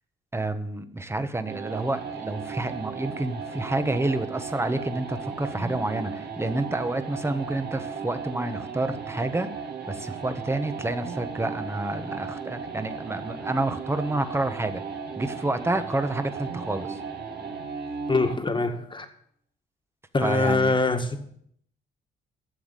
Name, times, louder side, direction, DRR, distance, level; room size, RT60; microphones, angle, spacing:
voice 1, 0.3-14.8 15.2-17.0 20.2-20.8, right 2 dB, 15° right, 1.3 m, -29 dB
sound 1, 1.5-18.5, right 5 dB, 55° right, 2.4 m, -36 dB
voice 2, 18.1-19.1 20.1-21.2, left 3 dB, 25° left, 1.9 m, -24 dB
13.0 x 7.2 x 8.4 m
cardioid pair, 90°, 20 cm